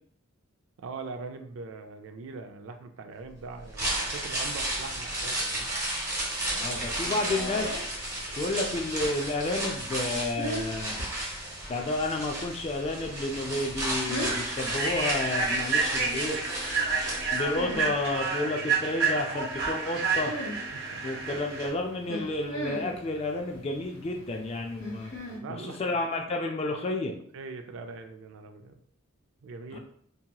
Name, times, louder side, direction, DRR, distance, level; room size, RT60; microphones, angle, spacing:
voice 1, 0.8-5.7 16.2-16.4 18.3-18.5 20.7-21.2 25.4-25.8 27.3-28.7 29.4-29.8, right 4 dB, 65° right, 6 dB, 0.3 m, -41 dB
sound 1, 3.5-17.8 18.1-18.2, right 1 dB, 15° right, 0.8 m, -33 dB
voice 2, 6.6-7.8 8.3-11.0 11.7-16.4 17.3-20.3 21.0-25.1 25.5-27.1 29.7-29.8, left 2 dB, 30° left, 3 dB, 0.3 m, -31 dB
sound 2, 7.0-25.4, equal, 80° left, 1.0 m, -41 dB
Human voice / Train, 12.8-13.0 13.4-13.6 14.1-21.7, right 4 dB, 50° right, 0.8 m, -30 dB
2.8 x 2.8 x 2.2 m, 0.63 s
head